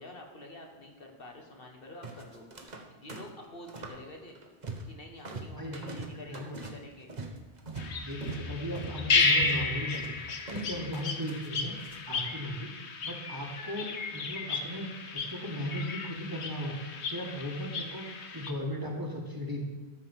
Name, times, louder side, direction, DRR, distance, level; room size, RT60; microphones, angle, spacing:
voice 1, 0.0-4.4 4.9-7.1, left 1 dB, 60° left, 1 dB, 1.7 m, -48 dB
sound 1, 2.0-2.8 3.1-4.0 4.3-5.0 5.2-12.0, right 2 dB, 40° right, 1.3 m, -42 dB
voice 2, 5.6-6.6 8.0-11.8 12.1-12.7 13.0-16.8 17.1-19.6, equal, 20° right, -1 dB, 1.8 m, -37 dB
sound 2, 7.8-18.5, left 4 dB, 85° left, 1.3 m, -33 dB
13.5 x 5.3 x 7.3 m, 1.3 s
omnidirectional pair, 1.1 m